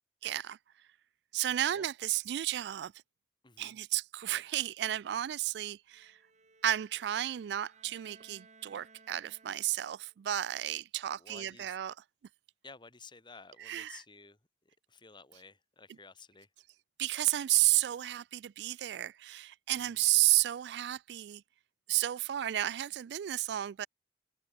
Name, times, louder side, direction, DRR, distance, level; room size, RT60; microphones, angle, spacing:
voice 1, 0.2-0.6 1.3-2.9 3.6-6.2 6.6-12.0 13.6-14.0 17.0-21.4 21.9-23.9, right 14 dB, 70° right, 0.3 m, -32 dB
voice 2, 3.4-3.8 11.2-11.8 12.6-14.4 14.9-16.5 19.8-20.0, left 4 dB, 25° left, 2.4 m, -53 dB
Bowed string instrument, 5.9-10.1, right 4 dB, 45° right, 6.8 m, -61 dB
open air
head